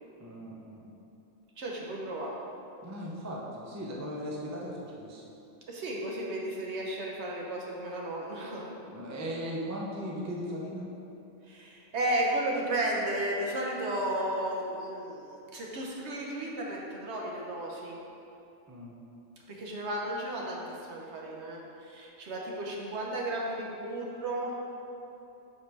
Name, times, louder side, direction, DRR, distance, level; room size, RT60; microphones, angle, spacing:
voice 1, 0.2-1.0 2.8-5.2 8.9-10.9 18.7-19.0, equal, 20° right, -4 dB, 0.5 m, -38 dB
voice 2, 1.6-2.3 5.7-8.7 11.5-18.0 19.5-24.6, right 1 dB, 60° right, -2 dB, 1.1 m, -34 dB
5.2 x 4.5 x 5.3 m, 2.8 s
omnidirectional pair, 1.4 m